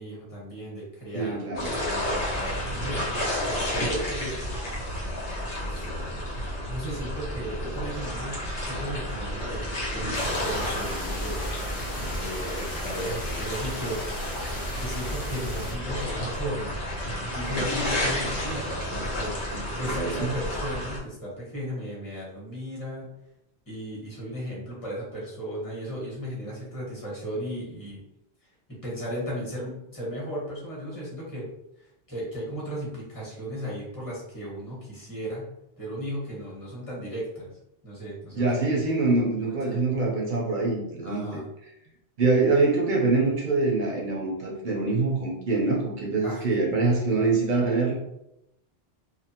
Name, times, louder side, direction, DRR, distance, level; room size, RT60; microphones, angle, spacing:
voice 1, 0.0-4.4 5.7-5.9 6.7-11.5 12.0-14.0 14.8-16.8 17.3-19.3 19.7-23.1 23.7-28.0 28.7-31.5 32.1-35.5 35.8-37.5 37.8-38.7 39.5-39.8 41.0-41.4 46.2-46.5 46.8-46.9, equal, 20° left, -5 dB, 1.1 m, -35 dB
voice 2, 1.1-1.7 19.5-20.3 38.4-41.4 42.2-47.9, right 3 dB, 55° right, -2 dB, 0.6 m, -25 dB
sound 1, 1.5-21.0, equal, 85° left, 1.1 m, -31 dB
sound 2, 10.1-15.7, left 1 dB, 45° left, 1.0 m, -37 dB
2.5 x 2.4 x 2.8 m, 0.82 s
omnidirectional pair, 1.1 m